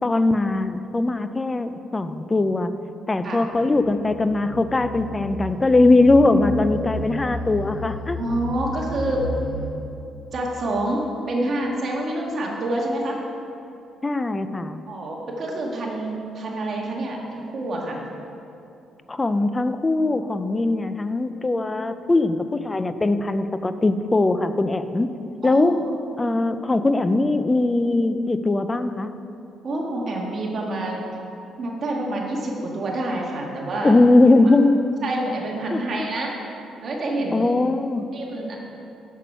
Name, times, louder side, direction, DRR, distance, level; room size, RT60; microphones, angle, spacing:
voice 1, 0.0-2.7 3.1-8.2 14.0-14.8 19.1-25.1 25.4-25.7 26.2-29.1 33.8-34.9 35.7-35.8 37.3-38.1, left 2 dB, 20° left, 11 dB, 0.5 m, -20 dB
sound 1, 3.6-9.7, left 2 dB, 85° left, 1.3 m, -33 dB
voice 2, 8.2-9.3 10.3-13.2 14.9-18.0 25.4-25.7 26.2-26.4 29.6-31.1 31.6-34.0 35.0-36.3 36.8-37.6 38.1-38.6, right 1 dB, 50° right, -1 dB, 1.8 m, -27 dB
8.2 x 7.3 x 5.5 m, 2.8 s
cardioid pair, 90°, 0 cm